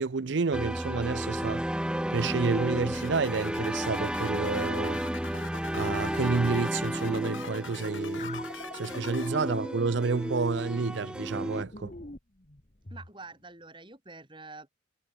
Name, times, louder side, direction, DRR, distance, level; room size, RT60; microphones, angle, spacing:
voice 1, 0.0-1.6 2.1-5.0 5.7-8.5 8.7-11.9, right 4 dB, 60° right, 0.5 m, -30 dB
sound 1, 0.5-11.6, equal, 5° right, 0.6 m, -32 dB
sound 2, 2.9-9.3, left 5 dB, 70° left, 3.9 m, -45 dB
sound 3, 8.2-13.1, left 2 dB, 35° left, 1.8 m, -45 dB
voice 2, 12.9-14.7, right 3 dB, 25° right, 6.5 m, -47 dB
head